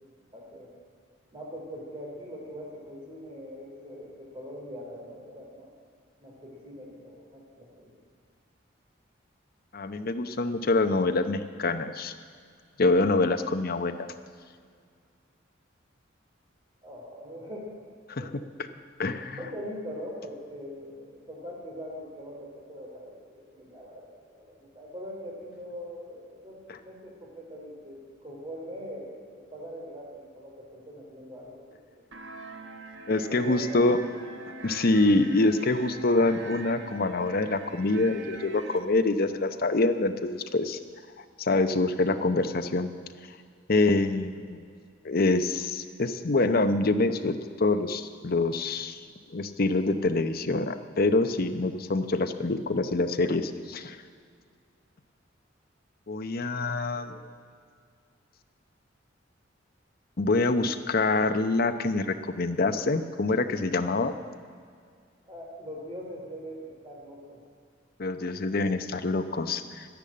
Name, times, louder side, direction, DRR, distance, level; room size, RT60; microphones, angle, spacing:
voice 1, 0.3-0.7 1.3-5.7 6.2-7.9 16.8-17.7 18.2-18.5 19.4-31.8 33.1-33.9 44.3-44.6 57.0-57.3 65.3-67.4, equal, 25° right, -2 dB, 3.4 m, -42 dB
voice 2, 9.7-12.1 12.8-14.1 18.1-18.3 19.0-19.4 33.1-34.0 34.6-40.8 41.4-42.9 43.7-44.6 45.0-49.0 49.3-54.0 56.1-57.1 60.2-64.1 68.0-69.9, left 2 dB, 50° left, 9 dB, 0.8 m, -25 dB
sound 1, 32.1-38.8, right 3 dB, 70° right, 1.3 m, -43 dB
12.0 x 10.5 x 8.6 m, 2.1 s
head